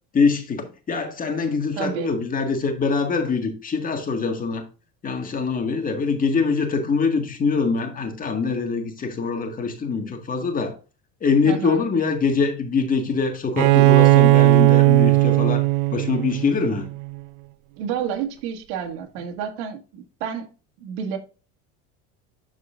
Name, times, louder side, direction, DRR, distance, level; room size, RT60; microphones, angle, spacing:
voice 1, 0.1-4.6 5.0-10.7 11.2-15.6 15.9-16.9, left 4 dB, 25° left, 1.9 m, -23 dB
voice 2, 1.7-2.2 11.4-11.8 17.8-20.5 20.8-21.2, right 8 dB, 90° right, 1.9 m, -30 dB
Bowed string instrument, 13.6-17.2, right 23 dB, 70° right, 0.6 m, -17 dB
12.0 x 4.7 x 2.5 m
cardioid pair, 145°, 31 cm